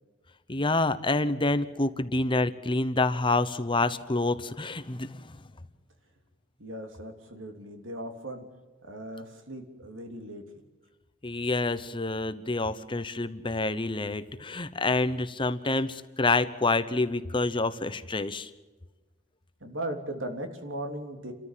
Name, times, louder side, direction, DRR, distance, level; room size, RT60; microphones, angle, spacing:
voice 1, 0.5-5.4 11.2-18.5, left 2 dB, 25° left, 12 dB, 0.9 m, -27 dB
voice 2, 6.6-8.5 8.8-10.4 19.6-21.3, right 1 dB, 90° right, 5 dB, 3.3 m, -38 dB
30.0 x 13.5 x 7.5 m, 1.3 s
head